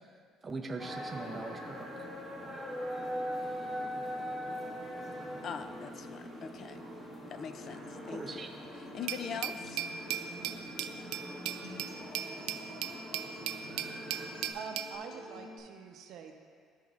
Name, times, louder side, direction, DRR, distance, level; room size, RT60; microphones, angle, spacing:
voice 1, 0.4-1.9 3.9-4.0 4.4-4.5 8.1-8.5, right 3 dB, 20° right, 1 dB, 0.5 m, -41 dB
sound 1, 0.8-14.5, equal, 15° left, 1.2 m, -42 dB
voice 2, 5.4-6.8 7.3-8.4 8.9-9.8, left 7 dB, 45° left, 10 dB, 0.3 m, -42 dB
Acoustic guitar, 7.6-15.6, left 1 dB, 75° left, 1.4 m, -50 dB
Glass, 9.1-15.0, right 10 dB, 90° right, 0.3 m, -38 dB
voice 3, 14.1-16.4, right 6 dB, 65° right, 4 dB, 0.7 m, -45 dB
13.0 x 5.1 x 2.4 m, 2.1 s
cardioid pair, 140°, 0 cm